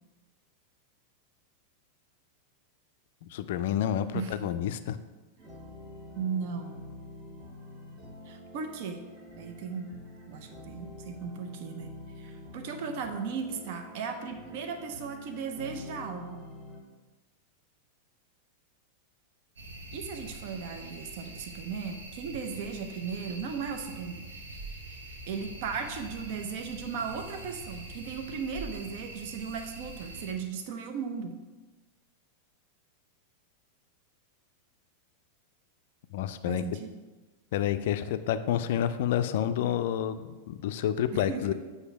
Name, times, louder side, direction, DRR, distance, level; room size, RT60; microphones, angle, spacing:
voice 1, 3.3-5.0 36.1-36.6 37.5-41.5, left 10 dB, 55° left, 11 dB, 0.4 m, -29 dB
voice 2, 4.1-4.5 6.2-6.8 8.3-9.0 9.4-9.9 10.3-11.9 12.2-16.4 19.9-24.3 25.3-31.4 36.5-36.9 41.1-41.5, right 6 dB, 50° right, 6 dB, 0.5 m, -36 dB
sound 1, 5.4-16.8, left 1 dB, 30° right, 1.3 m, -47 dB
sound 2, 19.6-30.3, right 2 dB, 65° right, 1.1 m, -44 dB
7.9 x 2.7 x 5.8 m, 1.2 s
figure-of-eight pair, 90°, 0 cm